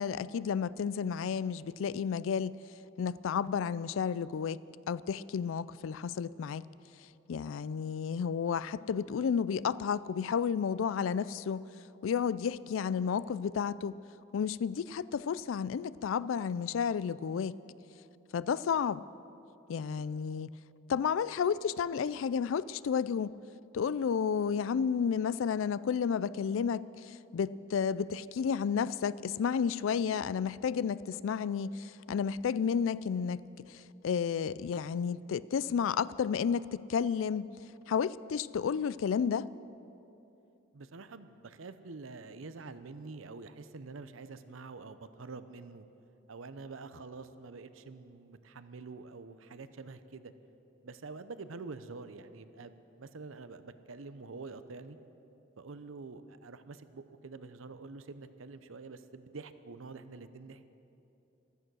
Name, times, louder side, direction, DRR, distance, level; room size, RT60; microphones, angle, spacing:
voice 1, 0.0-2.6 3.0-4.6 4.9-6.7 7.3-11.6 12.0-14.0 14.3-17.6 18.3-19.0 19.7-20.5 20.9-23.3 23.7-37.5 37.9-39.5, left 7 dB, 80° left, 19 dB, 0.4 m, -32 dB
voice 2, 40.7-45.9 46.3-50.3 50.8-55.0 55.6-60.7, right 3 dB, 85° right, 12 dB, 0.7 m, -46 dB
15.0 x 13.5 x 6.2 m, 2.8 s
head